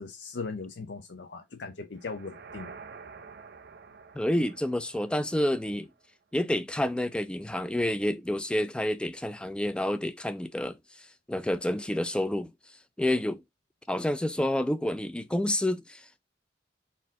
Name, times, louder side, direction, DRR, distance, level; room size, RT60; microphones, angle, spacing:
voice 1, 0.0-2.7, left 4 dB, 80° left, 0.6 m, -39 dB
sound 1, 1.9-6.1, right 5 dB, 65° right, 0.6 m, -49 dB
voice 2, 4.1-5.9 6.3-10.8 11.3-12.5 13.0-13.4 13.9-16.2, left 1 dB, 5° left, 0.4 m, -29 dB
4.2 x 2.6 x 3.6 m
head